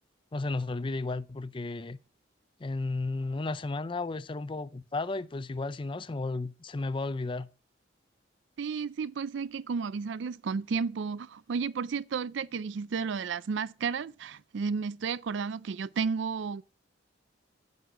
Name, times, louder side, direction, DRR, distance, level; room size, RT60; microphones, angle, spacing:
voice 1, 0.3-2.0 2.6-7.5, left 3 dB, 25° left, 0.4 m, -33 dB
voice 2, 8.6-16.6, right 5 dB, 65° right, 0.4 m, -32 dB
9.3 x 8.2 x 3.8 m
head